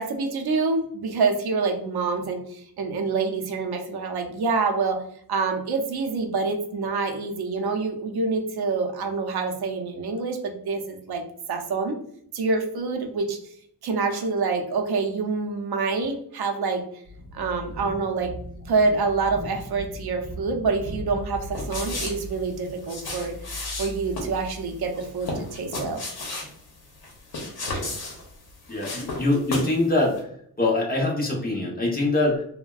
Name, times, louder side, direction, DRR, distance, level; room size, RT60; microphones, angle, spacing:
voice 1, 0.0-5.0 5.3-11.2 11.5-12.0 12.3-13.4 13.8-16.8 17.3-18.3 18.7-23.3 23.8-26.0, right 4 dB, 75° right, 3 dB, 0.6 m, -26 dB
sound 1, 17.0-25.2, equal, 35° right, 0.6 m, -39 dB
sound 2, 21.5-29.8 30.1-30.2, left 2 dB, 70° left, 0.9 m, -34 dB
voice 2, 28.7-30.2 30.6-32.4, left 2 dB, 25° left, -2 dB, 0.8 m, -23 dB
3.3 x 2.1 x 2.3 m, 0.66 s
wide cardioid pair, 125°, 39 cm